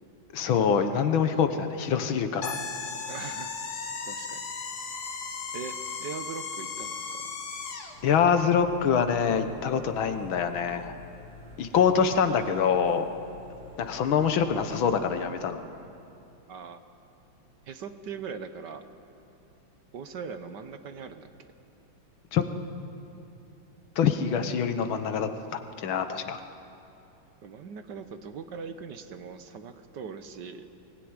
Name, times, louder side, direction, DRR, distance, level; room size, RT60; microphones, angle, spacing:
voice 1, 0.3-2.6 8.0-11.0 11.6-13.1 13.8-15.6 22.3-22.5 24.0-26.4, left 7 dB, 75° left, 8 dB, 1.9 m, -25 dB
sound 1, 2.4-8.0, left 5 dB, 50° left, 1.9 m, -36 dB
voice 2, 3.0-3.6 4.0-4.4 5.5-7.2 15.5-16.1 16.5-16.8 17.7-18.8 19.9-21.5 27.4-30.7, right 6 dB, 60° right, 9 dB, 1.6 m, -41 dB
sound 2, 7.9-15.2, left 2 dB, 90° right, 8.9 m, -49 dB
22.5 x 16.5 x 9.7 m, 2.8 s
omnidirectional pair, 2.2 m